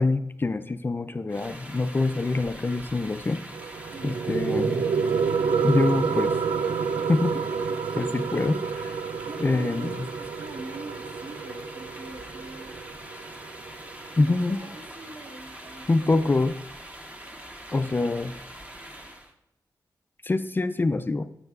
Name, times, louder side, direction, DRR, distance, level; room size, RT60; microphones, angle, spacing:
voice 1, 0.0-3.4 4.0-4.8 5.6-6.3 7.1-7.4 7.9-9.0 9.4-10.0 14.2-14.6 15.9-16.5 17.7-18.4 20.2-21.3, left 3 dB, 30° left, 12 dB, 0.4 m, -25 dB
sound 1, 1.3-19.3, right 1 dB, 20° right, 1.0 m, -43 dB
sound 2, 3.5-14.5, right 5 dB, 80° right, 0.3 m, -29 dB
voice 2, 3.9-4.3 9.0-12.8 14.2-16.3, right 2 dB, 65° right, -1 dB, 1.9 m, -43 dB
10.5 x 7.1 x 2.4 m, 0.82 s
wide cardioid pair, 85°, 7 cm